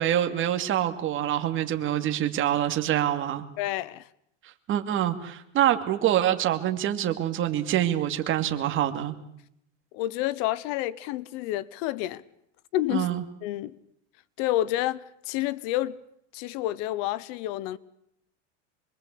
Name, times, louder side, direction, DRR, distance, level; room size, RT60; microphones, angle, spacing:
voice 1, 0.0-3.5 4.4-9.2 12.9-13.2, right 11 dB, 35° right, 2.5 m, -26 dB
voice 2, 3.6-4.0 9.9-12.2 12.7-13.1 13.4-13.8 14.4-16.0 16.3-17.8, left 15 dB, 50° left, 1.0 m, -29 dB
25.5 x 22.0 x 8.5 m
supercardioid pair, 140°, 37 cm